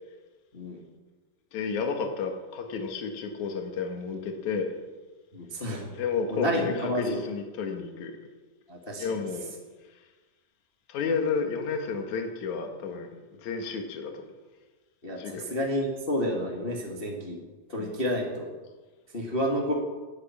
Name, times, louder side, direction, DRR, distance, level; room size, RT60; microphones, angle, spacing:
voice 1, 1.5-4.7 6.0-8.2 9.0-9.5 10.9-14.2 15.2-15.5 17.8-18.1, left 5 dB, 60° left, 4 dB, 2.9 m, -31 dB
voice 2, 5.3-5.9 6.3-7.2 8.7-9.2 15.0-17.4 17.7-18.5 19.1-19.7, equal, 20° left, -1 dB, 1.7 m, -30 dB
18.0 x 10.5 x 7.2 m, 1.3 s
omnidirectional pair, 3.9 m